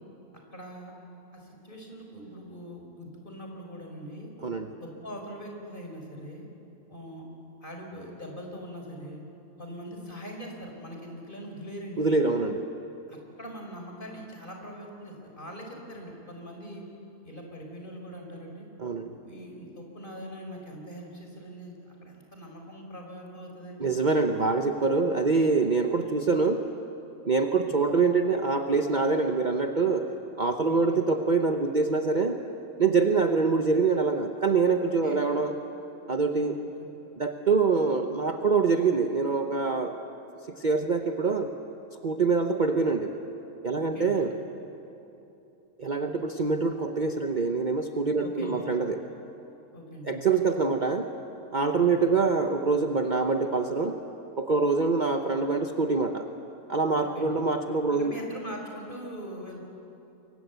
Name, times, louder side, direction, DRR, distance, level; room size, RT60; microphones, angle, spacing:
voice 1, 0.5-0.9 1.3-4.3 4.8-6.5 6.9-7.2 7.6-9.2 9.6-12.0 13.1-16.8 17.2-18.7 19.0-23.9 27.6-27.7 30.6-31.0 35.0-35.2 36.8-36.9 43.7-44.2 48.2-48.6 49.7-50.2 51.9-52.1 57.0-57.4 57.9-59.6, equal, 35° left, 1 dB, 4.6 m, -42 dB
voice 2, 4.4-4.7 12.0-12.7 18.8-19.2 23.8-26.6 27.2-30.1 30.4-32.4 32.8-35.5 36.1-36.6 37.2-39.9 40.5-41.5 42.0-43.1 43.6-44.3 45.8-49.0 50.0-51.1 51.5-54.0 54.4-56.3 56.7-58.2, right 4 dB, 35° right, 4 dB, 1.0 m, -25 dB
29.0 x 23.5 x 8.1 m, 2.9 s
omnidirectional pair, 1.5 m